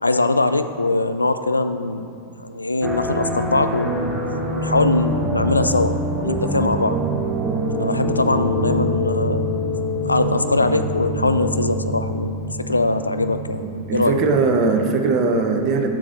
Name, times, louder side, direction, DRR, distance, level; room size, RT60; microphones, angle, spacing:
voice 1, 0.0-2.1 2.4-4.1 4.5-7.0 7.7-9.5 10.0-14.2, left 2 dB, 80° left, 10 dB, 0.4 m, -21 dB
sound 1, 2.8-14.9, equal, 10° right, 0.8 m, -25 dB
voice 2, 13.6-16.0, right 4 dB, 35° right, 4 dB, 0.8 m, -20 dB
7.4 x 6.6 x 4.2 m, 2.7 s
figure-of-eight pair, 90°, 0 cm